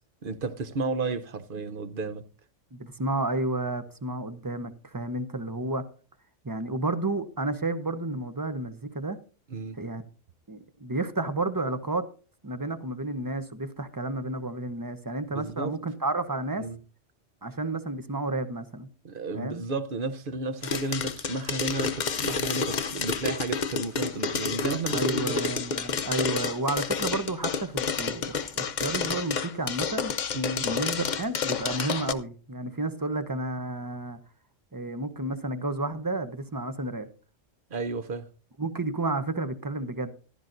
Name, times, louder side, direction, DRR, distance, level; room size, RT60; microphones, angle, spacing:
voice 1, 0.2-2.2 9.5-9.8 15.3-15.7 16.6-16.8 19.0-25.4 30.3-30.7 37.7-38.3, right 3 dB, 50° right, 0.9 m, -32 dB
voice 2, 2.7-5.8 6.4-9.2 9.7-10.0 10.5-12.0 12.4-16.7 17.4-18.9 19.3-19.6 24.9-30.1 30.6-34.2 34.7-37.1 38.6-40.1, right 2 dB, 20° right, 0.7 m, -31 dB
sound 1, 20.6-32.1, left 5 dB, 45° left, 0.7 m, -29 dB
15.0 x 12.0 x 2.6 m
omnidirectional pair, 1.3 m